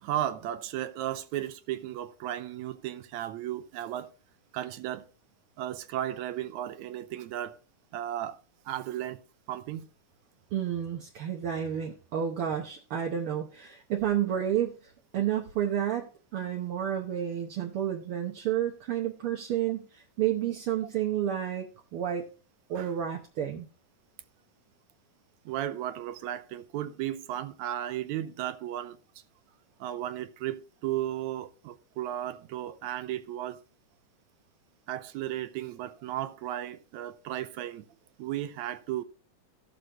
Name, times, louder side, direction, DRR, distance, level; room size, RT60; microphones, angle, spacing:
voice 1, 0.0-4.1 4.5-5.1 5.6-7.6 7.9-8.4 8.7-9.2 9.5-9.9 22.8-22.9 25.5-29.0 29.8-33.6 34.9-37.9 38.2-39.0, right 12 dB, 75° right, 2.0 m, -35 dB
voice 2, 10.5-16.1 16.3-21.7 21.9-22.2 22.7-23.7, right 10 dB, 60° right, 1.5 m, -30 dB
16.0 x 6.7 x 3.0 m
omnidirectional pair, 3.5 m